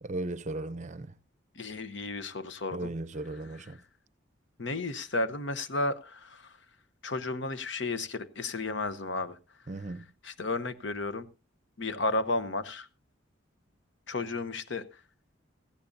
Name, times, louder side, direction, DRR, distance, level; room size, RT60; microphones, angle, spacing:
voice 1, 0.0-1.1 2.7-3.8 9.7-10.0, right 2 dB, 35° right, 0.6 m, -36 dB
voice 2, 1.6-2.9 3.3-3.8 4.6-6.5 7.0-9.4 9.9-10.0 10.2-11.3 11.8-12.9 14.1-14.8, left 2 dB, 65° left, 0.9 m, -33 dB
17.0 x 14.5 x 2.6 m
head